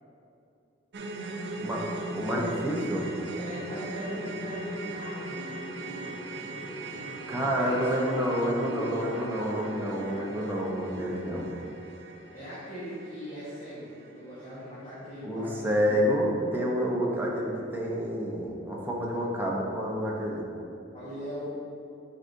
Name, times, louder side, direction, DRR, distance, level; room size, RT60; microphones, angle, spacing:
sound 1, 0.9-15.1 15.4-15.6 16.0-16.1, right 2 dB, 65° right, 0.6 m, -39 dB
voice 1, 2.1-3.0 7.3-11.5 15.2-20.4, equal, 10° right, -3 dB, 0.9 m, -28 dB
voice 2, 3.3-6.1 6.4-10.4 12.3-16.0 20.9-21.5, equal, 35° left, -11 dB, 1.4 m, -40 dB
8.0 x 5.0 x 2.7 m, 2.6 s
head